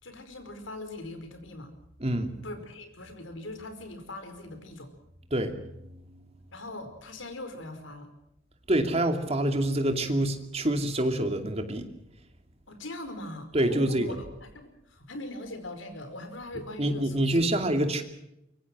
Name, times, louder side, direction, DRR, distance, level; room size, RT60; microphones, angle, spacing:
voice 1, 0.0-1.7 2.4-4.9 6.5-8.1 12.7-17.4 17.7-17.8, left 1 dB, 75° left, 8 dB, 4.9 m, -41 dB
voice 2, 2.0-2.3 5.3-5.6 8.7-11.9 13.5-14.1 16.8-18.0, right 1 dB, 30° right, 6 dB, 2.7 m, -26 dB
24.5 x 23.0 x 6.2 m, 0.82 s
head